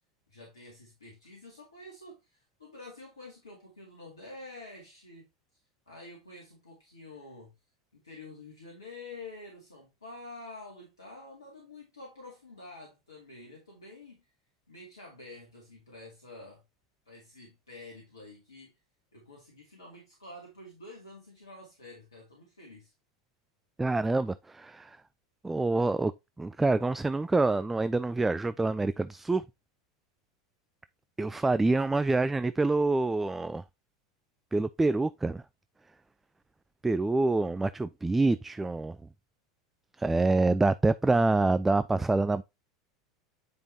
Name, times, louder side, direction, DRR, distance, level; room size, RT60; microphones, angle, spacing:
voice 1, 0.3-5.3 5.9-7.5 7.9-14.3 14.7-16.6 17.1-18.7 19.1-22.9, left 2 dB, 75° left, 2.4 m, -48 dB
voice 2, 23.8-25.0 25.4-26.1 26.4-29.4 31.2-33.6 34.5-35.4 36.8-39.0 40.0-42.4, right 3 dB, 10° right, 0.3 m, -26 dB
9.5 x 5.1 x 2.8 m
figure-of-eight pair, 80°, 2 cm